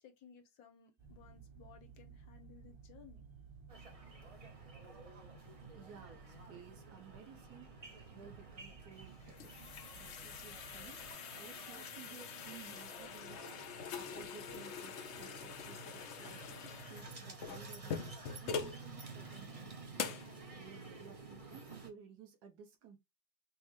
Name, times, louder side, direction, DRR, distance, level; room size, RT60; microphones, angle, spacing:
voice 1, 0.0-3.2, left 7 dB, 65° left, 1.1 m, -59 dB
sound 1, 1.0-11.1, right 5 dB, 20° right, 0.7 m, -57 dB
sound 2, 3.7-21.9, right 3 dB, 45° right, 0.4 m, -52 dB
voice 2, 5.7-7.7 8.1-11.1 11.3-18.1 18.4-20.0 20.5-23.0, right 7 dB, 65° right, 1.4 m, -56 dB
sound 3, 9.0-18.8 19.3-19.4 20.0-20.3, left 6 dB, 85° left, 0.6 m, -44 dB
5.6 x 2.1 x 3.1 m
omnidirectional pair, 2.0 m